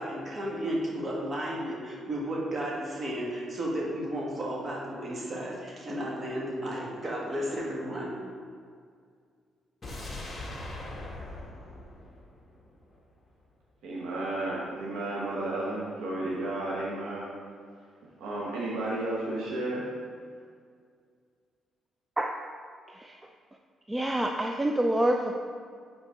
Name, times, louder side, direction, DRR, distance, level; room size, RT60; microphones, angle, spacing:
voice 1, 0.0-8.1, equal, 35° right, -3 dB, 1.7 m, -33 dB
sound 1, 9.8-13.0 13.3-13.4, left 1 dB, 30° left, 1.5 m, -41 dB
voice 2, 13.8-17.3 18.2-19.8, right 2 dB, 85° right, -5 dB, 1.1 m, -32 dB
voice 3, 23.9-25.3, right 1 dB, 15° right, 2 dB, 0.4 m, -26 dB
9.5 x 4.0 x 3.6 m, 2.1 s
cardioid pair, 90°, 0 cm